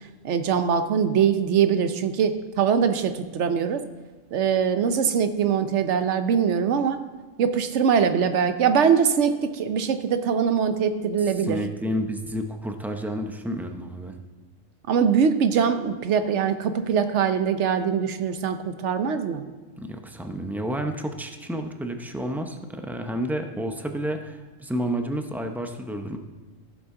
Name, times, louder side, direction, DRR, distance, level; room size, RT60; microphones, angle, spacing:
voice 1, 0.2-3.8 4.3-7.0 7.4-11.6 14.9-19.4, right 7 dB, 65° right, 9 dB, 1.0 m, -22 dB
voice 2, 11.2-14.2 19.8-26.2, equal, 5° right, 5 dB, 0.3 m, -30 dB
15.0 x 7.4 x 3.7 m, 1.3 s
omnidirectional pair, 1.3 m